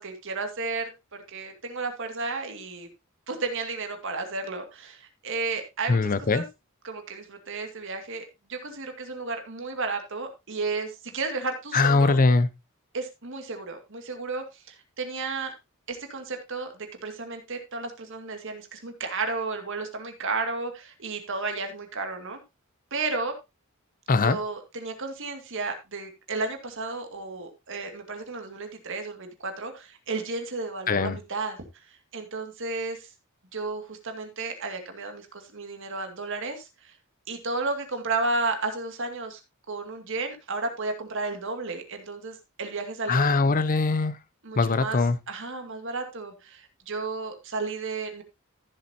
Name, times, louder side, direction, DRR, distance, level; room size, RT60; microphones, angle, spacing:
voice 1, 0.0-2.9 3.3-6.5 6.8-12.2 12.9-15.5 15.9-22.4 22.9-23.3 24.2-31.6 32.1-33.1 33.5-36.9 37.3-39.4 39.7-43.4 44.4-45.0 45.3-48.2, right 3 dB, 60° right, 2.2 m, -33 dB
voice 2, 5.9-6.4 11.7-12.5 24.1-24.4 30.9-31.2 43.1-44.2 44.6-45.2, left 3 dB, 40° left, 0.6 m, -21 dB
14.5 x 7.5 x 2.8 m
head